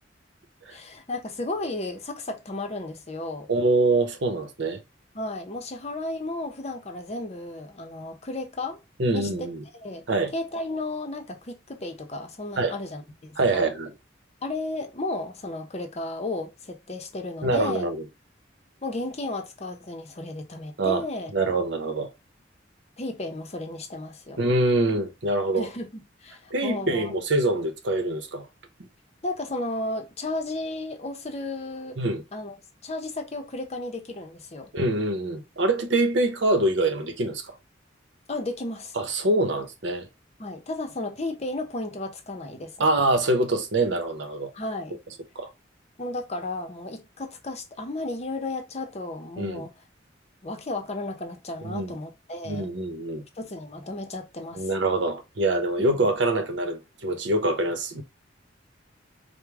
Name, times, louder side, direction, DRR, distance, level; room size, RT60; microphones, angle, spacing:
voice 1, 0.7-3.5 5.1-8.8 9.1-9.5 9.7-10.0 10.3-13.7 14.4-17.9 18.8-21.3 23.0-24.4 25.5-27.1 29.2-32.0 32.3-32.6 32.8-34.7 38.3-39.0 40.4-42.9 44.5-45.0 46.0-49.7 50.4-52.7 53.4-54.7 55.8-56.1, left 2 dB, 35° left, 0.8 m, -34 dB
voice 2, 3.5-4.8 9.0-9.6 10.1-10.3 12.6-12.7 13.4-13.9 17.4-18.0 20.8-21.0 21.3-22.1 24.4-25.7 26.5-28.5 32.0-32.2 34.7-37.5 39.0-40.1 42.8-44.5 45.4-45.5 49.4-49.7 51.6-52.0 52.4-53.2 54.5-58.0, right 2 dB, 70° right, 0.9 m, -24 dB
5.0 x 2.2 x 3.4 m
head